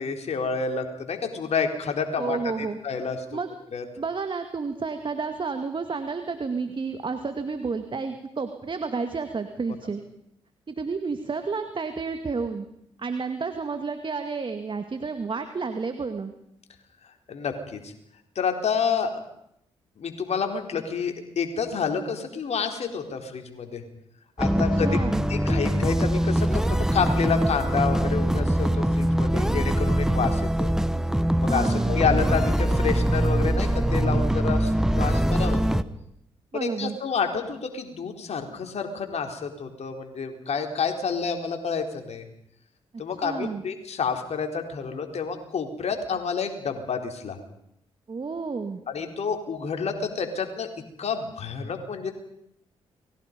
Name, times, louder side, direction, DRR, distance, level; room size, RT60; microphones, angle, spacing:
voice 1, 0.0-3.2 3.7-3.8 17.3-17.9 18.4-19.1 20.0-23.8 24.4-25.0 25.3-30.7 31.4-35.8 36.5-42.3 43.0-47.4 48.9-50.7 51.0-52.1, left 5 dB, 55° left, 4 dB, 4.2 m, -29 dB
voice 2, 2.2-2.8 3.3-3.5 4.0-10.0 10.7-12.7 13.0-16.3 24.5-25.2 31.5-32.0 36.5-37.0 43.2-43.6 48.1-48.8, right 4 dB, 40° right, 7 dB, 2.2 m, -31 dB
sound 1, 24.4-35.8, right 1 dB, 5° right, 1.2 m, -23 dB
30.0 x 22.0 x 5.4 m, 0.75 s
hypercardioid pair, 40°, 13 cm